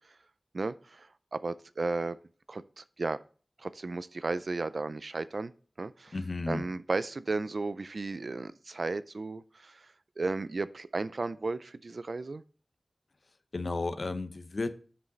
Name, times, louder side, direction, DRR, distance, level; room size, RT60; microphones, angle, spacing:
voice 1, 0.5-2.2 2.5-3.2 3.6-5.5 5.8-6.2 6.5-12.4, right 3 dB, 65° right, 15 dB, 0.5 m, -34 dB
voice 2, 6.1-6.6 13.5-14.7, left 3 dB, 65° left, 10 dB, 0.8 m, -33 dB
7.5 x 6.2 x 4.0 m, 0.39 s
wide cardioid pair, 65°, 0 cm